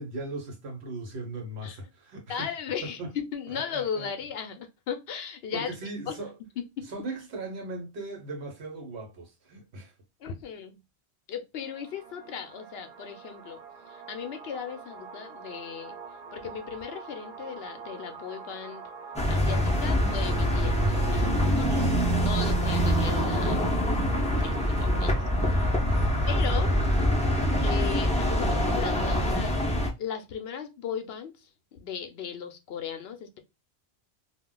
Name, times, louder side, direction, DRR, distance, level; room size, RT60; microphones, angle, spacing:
voice 1, 0.0-2.5 2.8-3.1 3.5-4.1 5.5-6.3 6.9-9.9 21.7-22.0 22.4-22.5 25.8-26.4, right 2 dB, 75° right, 1.2 m, -38 dB
voice 2, 2.3-5.7 6.1-6.2 6.8-6.9 10.2-10.8 11.3-13.6 13.9-16.0 16.3-18.9 19.3-21.3 21.6-21.7 22.3-23.6 24.4-25.8 26.3-26.8 27.6-29.6 30.0-33.4, left 7 dB, 70° left, 0.8 m, -37 dB
sound 1, 11.6-29.2, right 4 dB, 50° right, 0.5 m, -43 dB
sound 2, 19.2-29.9, equal, 10° left, 0.4 m, -25 dB
2.4 x 2.1 x 3.7 m
omnidirectional pair, 1.1 m